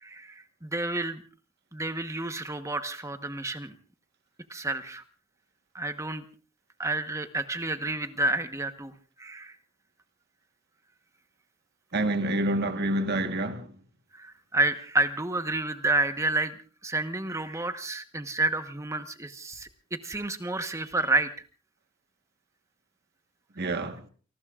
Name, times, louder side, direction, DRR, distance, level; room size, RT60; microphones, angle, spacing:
voice 1, 0.0-1.2 1.7-3.7 4.5-5.0 5.7-6.2 6.8-8.9 9.2-9.5 14.1-16.6 16.8-19.7 20.0-21.3, right 2 dB, 15° right, 1.1 m, -29 dB
voice 2, 11.9-13.7 23.6-24.0, right 1 dB, 50° right, 1.4 m, -27 dB
29.5 x 19.0 x 2.5 m
head